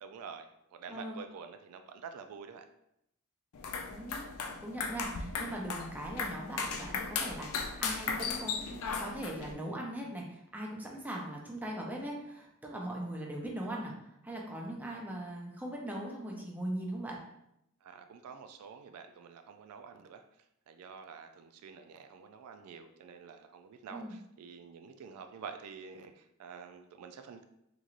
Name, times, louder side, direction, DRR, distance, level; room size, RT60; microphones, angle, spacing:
voice 1, 0.0-2.7 17.8-20.2 20.7-27.4, right 6 dB, 85° right, 7 dB, 0.3 m, -48 dB
voice 2, 0.9-1.2 3.9-13.9 14.2-17.2 23.9-24.2, right 1 dB, 10° right, -2 dB, 0.5 m, -40 dB
sound 1, 3.5-9.5, left 5 dB, 75° left, 0.4 m, -37 dB
3.9 x 3.0 x 2.4 m, 0.80 s
head